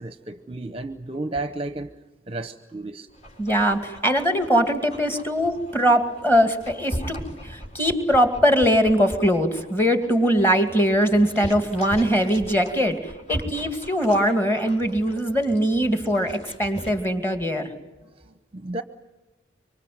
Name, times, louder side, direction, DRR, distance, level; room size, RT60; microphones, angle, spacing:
voice 1, 0.0-1.9 2.3-3.1 18.0-18.8, right 2 dB, 30° right, 11 dB, 0.8 m, -33 dB
Dog, 3.1-16.9, equal, 35° left, 4.6 m, -39 dB
voice 2, 3.4-7.2 7.4-17.7, equal, 10° left, 8 dB, 2.3 m, -21 dB
25.5 x 24.5 x 9.4 m, 1.1 s
head